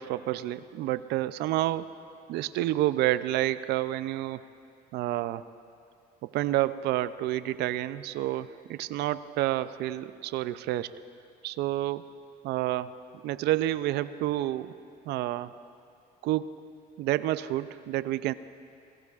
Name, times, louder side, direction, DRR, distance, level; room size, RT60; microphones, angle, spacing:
voice 1, 0.0-2.0 2.3-4.4 4.9-5.5 6.2-10.9 11.4-12.1 12.4-12.9 13.2-14.8 15.1-15.5 16.2-16.6 17.0-18.3, right 14 dB, 80° right, 14 dB, 0.4 m, -29 dB
29.0 x 16.5 x 2.4 m, 2.4 s
cardioid pair, 110°, 17 cm